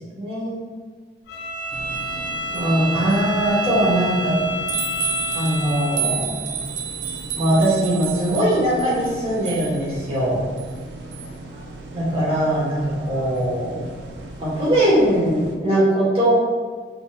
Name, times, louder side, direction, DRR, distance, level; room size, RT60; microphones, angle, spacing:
voice 1, 0.2-0.6 2.5-4.3 5.3-6.3 7.4-10.4 11.9-13.8 14.4-16.4, right 1 dB, 30° right, -8 dB, 1.0 m, -20 dB
Bowed string instrument, 1.3-6.2, equal, 65° left, 0.3 m, -29 dB
sound 1, 1.7-15.5, right 6 dB, 80° right, 0.4 m, -33 dB
3.7 x 2.6 x 2.2 m, 1.5 s
head